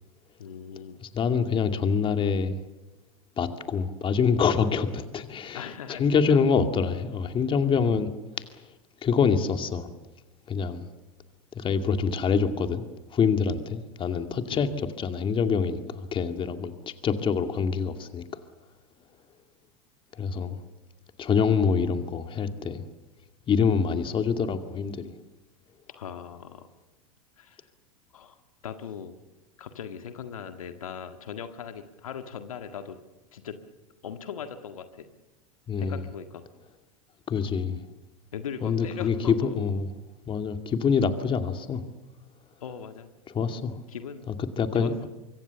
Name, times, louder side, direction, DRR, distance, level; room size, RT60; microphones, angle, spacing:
voice 1, 0.4-1.0 5.5-6.0 6.3-6.4 14.5-14.7 25.9-26.7 27.4-27.7 28.1-28.4 28.6-29.2 29.6-33.0 33.3-33.6 34.0-35.1 35.8-36.4 38.3-39.6 42.6-43.1 43.9-44.3 44.7-44.9, left 7 dB, 75° left, 8 dB, 1.8 m, -39 dB
voice 2, 1.0-2.6 3.4-8.5 9.0-9.9 10.5-10.8 11.5-12.8 13.1-14.7 15.0-18.3 20.2-20.6 21.2-22.8 23.5-25.1 35.7-36.0 37.3-37.8 38.6-39.9 40.3-41.8 43.3-43.8 44.4-45.1, left 6 dB, 30° left, 7 dB, 2.2 m, -26 dB
25.0 x 24.0 x 7.0 m, 1.1 s
hypercardioid pair, 90°, 18 cm